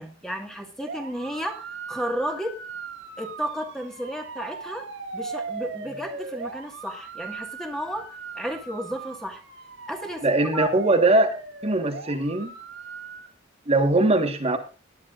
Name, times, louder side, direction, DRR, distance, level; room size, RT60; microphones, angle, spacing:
voice 1, 0.0-2.6 3.2-4.9 5.1-9.4 9.9-10.7, equal, ahead, 4 dB, 1.6 m, -33 dB
sound 1, 0.8-13.3, right 4 dB, 75° right, 2.2 m, -38 dB
voice 2, 10.2-11.3 11.6-12.5 13.7-14.6, right 2 dB, 30° right, 4 dB, 1.4 m, -21 dB
19.0 x 9.7 x 2.4 m, 0.36 s
head